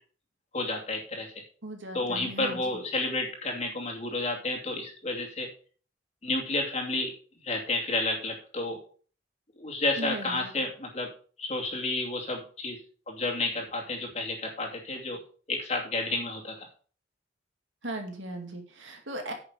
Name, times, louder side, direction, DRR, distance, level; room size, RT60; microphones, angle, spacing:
voice 1, 0.5-1.3 1.9-5.5 6.2-7.1 7.4-8.8 9.6-11.1 11.4-12.8 13.1-15.2 15.5-16.7, left 2 dB, 35° left, 0 dB, 2.6 m, -31 dB
voice 2, 1.6-2.6 10.0-10.5 17.8-19.3, right 1 dB, 80° right, 3 dB, 2.4 m, -37 dB
9.8 x 6.4 x 4.9 m, 0.41 s
head